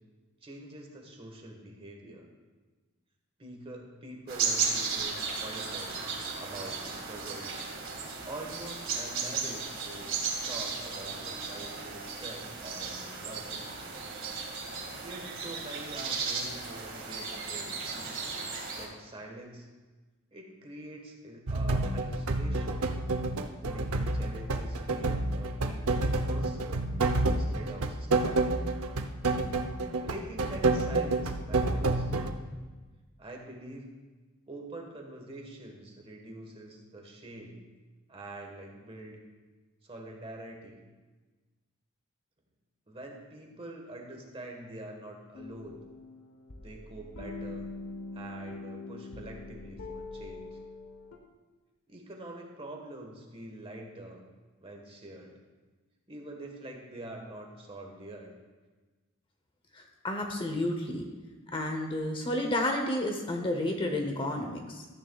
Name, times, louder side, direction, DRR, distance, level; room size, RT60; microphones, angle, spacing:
voice 1, 0.4-2.3 3.4-6.0 6.3-7.6 8.2-13.7 15.0-17.8 18.7-19.7 20.3-22.9 23.6-26.9 27.3-28.6 29.9-32.1 33.2-34.0 34.5-37.6 38.1-39.2 39.8-40.8 42.9-45.8 46.6-47.6 48.1-50.6 51.9-54.2 54.6-55.4 56.1-58.3, right 1 dB, 25° right, 1 dB, 1.4 m, -45 dB
sound 1, 4.3-18.9, right 5 dB, 60° right, 2.1 m, -35 dB
sound 2, 21.5-32.3, right 2 dB, 90° right, 0.7 m, -29 dB
sound 3, 45.3-51.2, left 2 dB, 85° left, 1.2 m, -43 dB
voice 2, 59.7-61.1 61.5-64.9, left 1 dB, 25° left, 3 dB, 0.8 m, -31 dB
13.5 x 9.8 x 2.4 m, 1.3 s
head